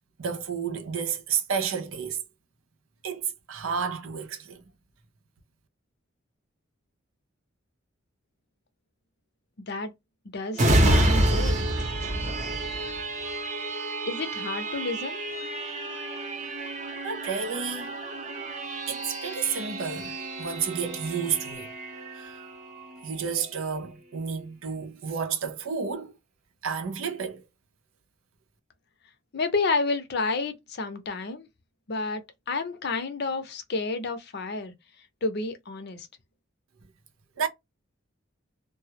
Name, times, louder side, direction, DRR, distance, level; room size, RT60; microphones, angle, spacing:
voice 1, 0.2-2.2 3.0-4.6 17.0-17.9 18.9-21.7 22.1-22.4 23.0-26.1 26.6-27.4 37.4-37.5, right 6 dB, 85° right, 0.6 m, -31 dB
voice 2, 10.3-11.6 14.1-15.2 29.3-31.5 31.9-34.7 35.2-36.1, left 3 dB, 55° left, 0.6 m, -30 dB
sound 1, 10.5-23.9 24.3-24.5, right 1 dB, 35° right, 0.7 m, -29 dB
2.2 x 2.0 x 2.7 m
head